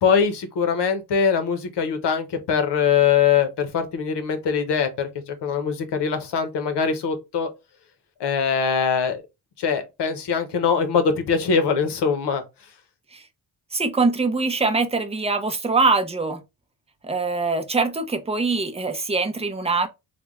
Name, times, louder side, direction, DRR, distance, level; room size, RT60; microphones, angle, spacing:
voice 1, 0.0-7.5 8.2-9.2 9.6-12.4, left 6 dB, 85° left, 0.9 m, -22 dB
voice 2, 13.7-16.4 17.0-19.9, right 3 dB, 15° right, 0.5 m, -23 dB
3.3 x 2.2 x 3.5 m
wide cardioid pair, 120°, 40 cm